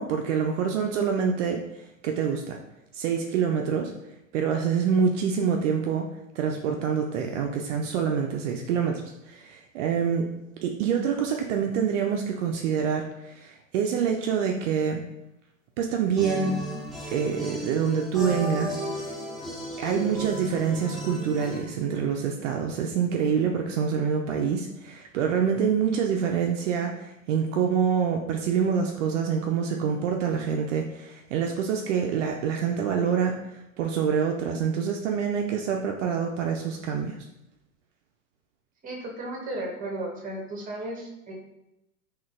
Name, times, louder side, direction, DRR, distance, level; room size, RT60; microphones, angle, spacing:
voice 1, 0.0-2.6 2.9-3.9 4.3-6.1 6.3-10.3 10.6-15.0 15.8-16.6 17.1-18.8 19.8-37.2, right 7 dB, 60° right, 2 dB, 0.5 m, -26 dB
sound 1, 16.2-21.6, right 1 dB, ahead, 0.3 m, -34 dB
voice 2, 38.8-41.3, right 1 dB, 20° right, 0 dB, 0.9 m, -34 dB
3.8 x 2.4 x 2.4 m, 0.89 s
hypercardioid pair, 90°, 41 cm